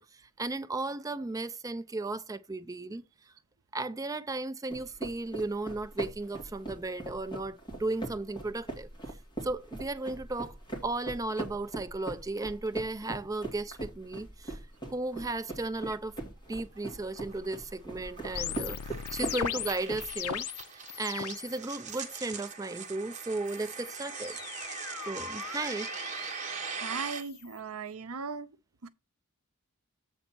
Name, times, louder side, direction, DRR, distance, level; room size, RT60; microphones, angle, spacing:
voice 1, 0.0-3.0 3.7-8.9 9.4-14.6 14.9-16.2 16.5-18.8 19.1-20.5 20.7-24.4 25.1-25.9, right 2 dB, 15° right, 0.4 m, -35 dB
sound 1, 4.7-20.4, right 2 dB, 20° left, 2.5 m, -41 dB
sound 2, 16.5-27.2, right 6 dB, 35° right, 1.4 m, -41 dB
sound 3, 18.4-21.6 21.9-22.4 23.5-27.6, left 9 dB, 75° left, 0.6 m, -39 dB
voice 2, 26.8-28.5 28.8-28.9, right 5 dB, 75° right, 0.6 m, -38 dB
8.0 x 4.1 x 6.0 m
head